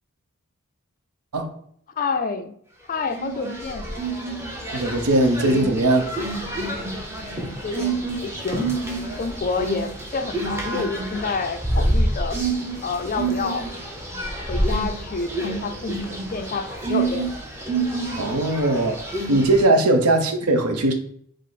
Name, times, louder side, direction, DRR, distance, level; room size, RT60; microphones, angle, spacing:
voice 1, 2.0-2.5 2.9-4.0 7.2-8.7 9.1-12.4 12.8-13.7 14.0-17.3 19.8-19.9, left 4 dB, 35° left, 0.3 m, -29 dB
sound 1, 3.1-19.6, right 2 dB, 10° right, 0.6 m, -28 dB
voice 2, 4.7-6.1 18.2-19.0 19.3-20.9, right 2 dB, 80° right, 0.7 m, -19 dB
5.1 x 2.0 x 4.0 m
head